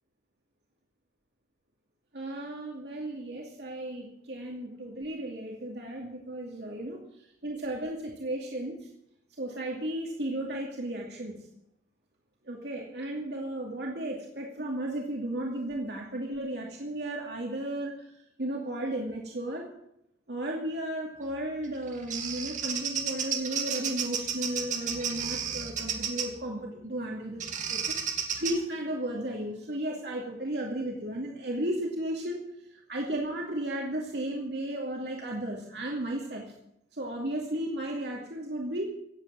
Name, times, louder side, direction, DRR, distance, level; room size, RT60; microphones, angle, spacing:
voice 1, 2.1-7.0 7.4-8.8 9.4-11.4 12.5-17.9 18.4-19.7 20.3-32.4 32.9-36.4 36.9-38.9, right 1 dB, 70° right, -1 dB, 2.6 m, -34 dB
Bird vocalization bird call bird song, 21.6-26.4 27.4-28.6, right 7 dB, 45° right, 2.0 m, -32 dB
17.0 x 8.4 x 7.7 m, 0.78 s
head